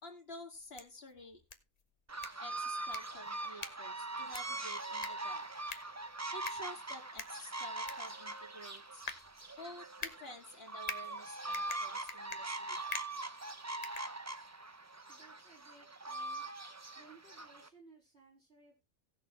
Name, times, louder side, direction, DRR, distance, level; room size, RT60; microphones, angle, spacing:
voice 1, 0.0-1.4 2.4-5.5 6.3-9.0 9.6-12.8, left 1 dB, 45° left, 2 dB, 2.7 m, -51 dB
sound 1, 0.5-14.7, left 4 dB, 30° left, 1.1 m, -48 dB
sound 2, 2.1-17.7, right 2 dB, 20° right, 0.4 m, -42 dB
voice 2, 15.1-16.4 16.9-18.8, right 4 dB, 50° right, -2 dB, 4.4 m, -61 dB
18.0 x 6.6 x 3.2 m, 0.26 s
omnidirectional pair, 1.4 m